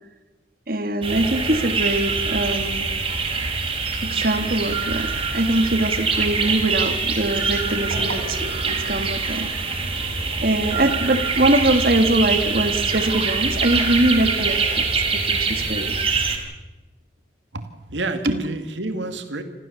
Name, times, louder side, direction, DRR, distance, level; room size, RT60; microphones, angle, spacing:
voice 1, 0.7-2.9 4.0-9.5 9.9-10.0 10.4-16.0 18.3-18.4, right 1 dB, 50° right, 8 dB, 1.7 m, -22 dB
sound 1, 1.0-16.4, right 4 dB, 30° right, 3.4 m, -24 dB
voice 2, 17.5-19.4, right 2 dB, 80° right, 7 dB, 2.2 m, -29 dB
27.0 x 14.5 x 7.0 m, 1.1 s
head